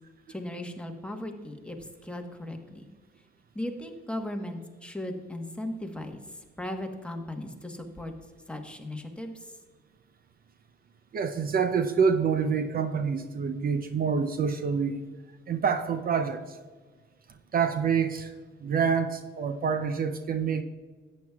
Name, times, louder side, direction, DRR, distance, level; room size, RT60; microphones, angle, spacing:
voice 1, 0.3-2.9 3.5-8.1 8.5-9.5, left 1 dB, 5° left, 3 dB, 1.2 m, -37 dB
voice 2, 11.1-15.1 15.5-16.6 17.5-18.3 18.6-20.6, right 6 dB, 50° right, 9 dB, 0.6 m, -27 dB
13.5 x 9.0 x 2.4 m, 1.4 s
cardioid pair, 90°, 20 cm